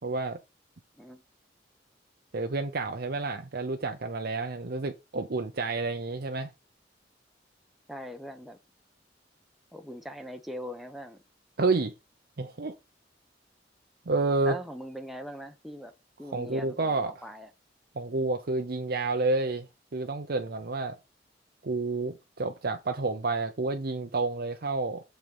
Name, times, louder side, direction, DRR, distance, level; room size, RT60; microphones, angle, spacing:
voice 1, 0.0-0.4 2.3-6.5 11.6-11.9 12.4-12.8 14.1-14.5 16.2-17.3 18.0-21.0 21.6-25.0, right 3 dB, 55° right, 0.7 m, -30 dB
voice 2, 7.9-8.6 9.7-11.2 14.4-15.9 16.2-17.5, equal, ahead, 1.0 m, -41 dB
7.5 x 5.1 x 5.4 m
head